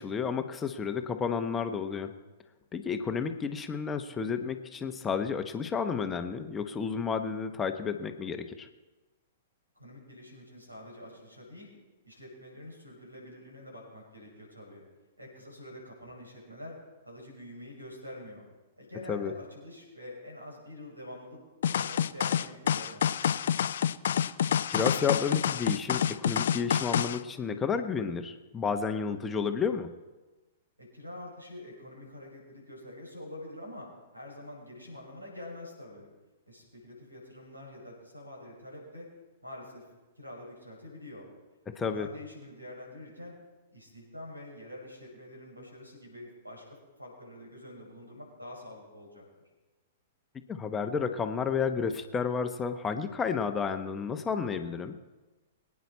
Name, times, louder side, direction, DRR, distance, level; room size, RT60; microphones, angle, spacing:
voice 1, 0.0-2.1 2.7-8.7 19.1-19.3 24.7-29.9 41.8-42.1 50.5-55.0, left 6 dB, 15° left, 7 dB, 1.0 m, -31 dB
voice 2, 9.7-11.7 12.1-14.8 15.2-16.8 17.0-18.4 18.8-21.4 21.7-23.5 30.8-33.9 34.1-36.1 36.4-39.1 39.4-39.8 40.2-41.3 41.9-43.3 43.7-49.2, left 1 dB, 85° right, -2 dB, 6.3 m, -46 dB
sound 1, 21.6-27.2, left 9 dB, 55° left, 0.5 m, -28 dB
23.5 x 9.6 x 4.2 m, 1.2 s
figure-of-eight pair, 105°, 0 cm